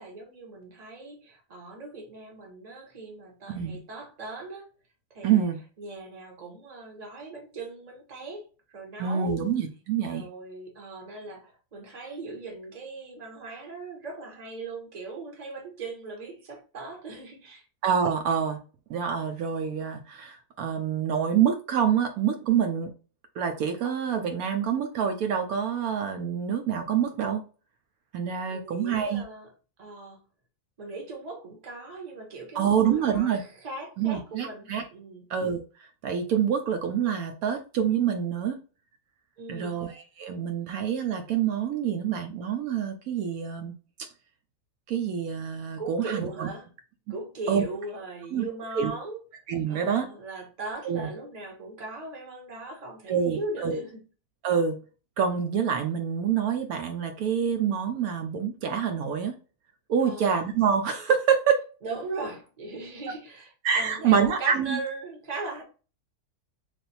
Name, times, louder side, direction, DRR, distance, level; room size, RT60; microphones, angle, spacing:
voice 1, 0.0-4.6 5.1-5.4 5.8-9.4 10.1-17.6 28.5-29.5 29.8-30.2 30.8-35.2 39.4-39.8 45.8-46.7 47.1-49.2 49.7-54.0 60.0-60.3 61.8-65.6, right 3 dB, 30° right, 1.0 m, -39 dB
voice 2, 3.5-3.8 5.2-5.6 9.0-10.3 17.8-18.6 18.9-22.9 23.4-27.4 28.1-29.2 32.5-33.4 34.0-34.8 35.3-35.6 36.0-38.6 39.5-43.7 44.9-46.5 47.5-47.6 48.3-48.4 48.7-48.9 49.5-50.1 50.8-51.1 53.1-53.8 54.4-54.8 55.2-59.3 59.9-61.5 63.6-64.8, right 8 dB, 75° right, 1.0 m, -26 dB
3.3 x 2.6 x 4.1 m
omnidirectional pair, 1.6 m